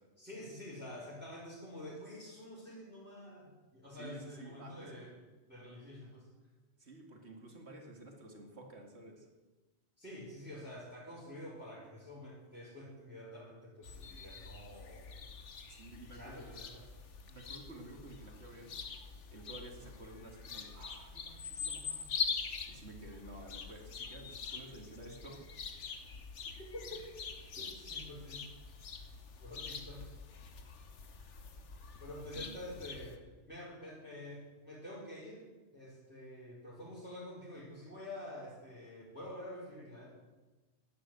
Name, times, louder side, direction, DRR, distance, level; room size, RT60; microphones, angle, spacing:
voice 1, 0.2-5.1 5.5-6.3 10.0-15.1 16.1-16.9 26.7-27.2 27.6-28.5 29.4-30.1 32.0-35.5 35.7-40.1, left 1 dB, 10° right, -8 dB, 4.4 m, -48 dB
voice 2, 3.9-4.9 6.8-9.3 14.1-14.2 15.7-16.6 17.3-18.8 19.3-22.1 22.7-25.5 32.3-32.7, right 2 dB, 65° right, 2 dB, 2.6 m, -52 dB
sound 1, 13.8-33.2, left 5 dB, 85° left, 1.5 m, -44 dB
12.0 x 10.5 x 7.7 m, 1.2 s
omnidirectional pair, 1.2 m